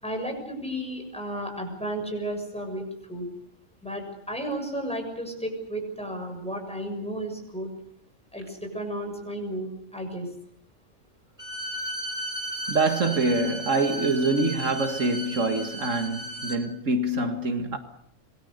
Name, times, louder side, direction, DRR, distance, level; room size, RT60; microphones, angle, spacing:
voice 1, 0.0-3.3 3.8-7.7 8.3-10.3, right 1 dB, 5° left, 6.9 m, -33 dB
Bowed string instrument, 11.4-16.6, equal, 25° right, 4.2 m, -35 dB
voice 2, 12.7-17.8, right 2 dB, 70° right, 2.2 m, -25 dB
26.5 x 22.0 x 6.7 m
omnidirectional pair, 1.3 m